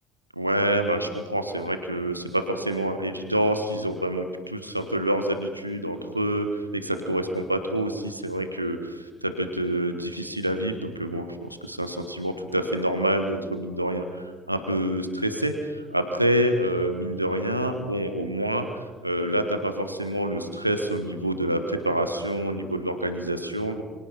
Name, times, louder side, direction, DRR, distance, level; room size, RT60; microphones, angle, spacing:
voice 1, 0.3-23.8, right 1 dB, 90° right, 7 dB, 1.4 m, -27 dB
28.5 x 24.5 x 4.4 m, 1.3 s
figure-of-eight pair, 55°, 0 cm